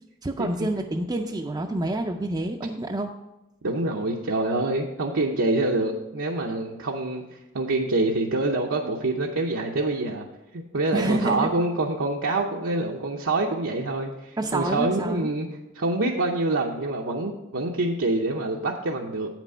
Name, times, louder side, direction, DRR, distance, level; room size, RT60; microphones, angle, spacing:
voice 1, 0.2-3.1 10.9-11.5 14.4-15.3, right 2 dB, 20° right, 1 dB, 0.4 m, -27 dB
voice 2, 3.6-10.2 10.5-15.5 15.7-19.3, right 2 dB, 80° right, -1 dB, 0.8 m, -26 dB
8.4 x 6.0 x 5.5 m, 0.97 s
head